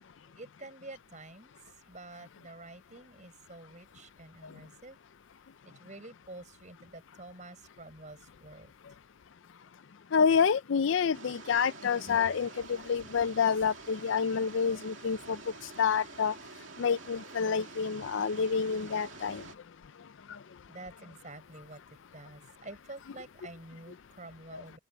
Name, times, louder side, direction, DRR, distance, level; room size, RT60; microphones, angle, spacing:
voice 1, 0.0-1.5 1.9-5.0 5.6-8.7 20.7-21.8 22.1-24.8, right 2 dB, 35° right, 6.5 m, -48 dB
voice 2, 10.1-15.4 15.8-16.3 16.8-19.4 24.5-24.6, left 6 dB, 60° left, 0.4 m, -28 dB
sound 1, 11.1-19.5, right 4 dB, 60° right, 2.5 m, -48 dB
open air
head